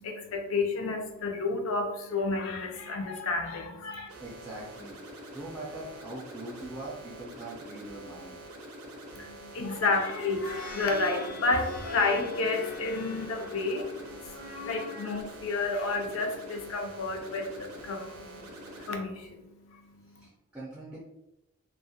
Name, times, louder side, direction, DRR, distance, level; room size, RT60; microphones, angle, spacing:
voice 1, 0.0-4.1 9.1-20.3, left 3 dB, 70° left, 4 dB, 0.4 m, -31 dB
sound 1, 4.1-18.9, right 1 dB, 90° right, 0.6 m, -46 dB
voice 2, 4.2-8.4 20.2-21.0, right 2 dB, 5° right, -7 dB, 0.3 m, -42 dB
sound 2, 9.9-15.2 15.8-15.9, left 2 dB, 90° left, 1.0 m, -41 dB
2.3 x 2.0 x 2.6 m, 0.94 s
head